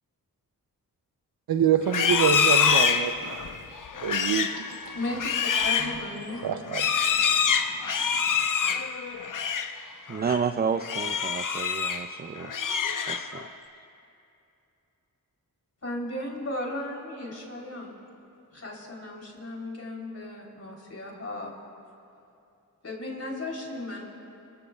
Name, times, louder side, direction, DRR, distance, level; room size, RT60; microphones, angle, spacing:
voice 1, 1.5-3.1 4.0-4.7 6.4-6.8, right 9 dB, 75° right, 7 dB, 0.6 m, -25 dB
Livestock farm animals working animals, 1.8-9.8 10.1-10.4 10.8-12.1 12.4-13.5, left 6 dB, 55° left, 0.8 m, -26 dB
voice 2, 4.9-6.4 15.8-17.9 18.5-21.6 22.8-24.1, left 1 dB, 40° left, -2 dB, 3.4 m, -35 dB
voice 3, 9.7-12.8 13.1-13.5, right 6 dB, 25° right, 8 dB, 0.4 m, -31 dB
28.0 x 14.5 x 2.3 m, 2.7 s
cardioid pair, 65°, 37 cm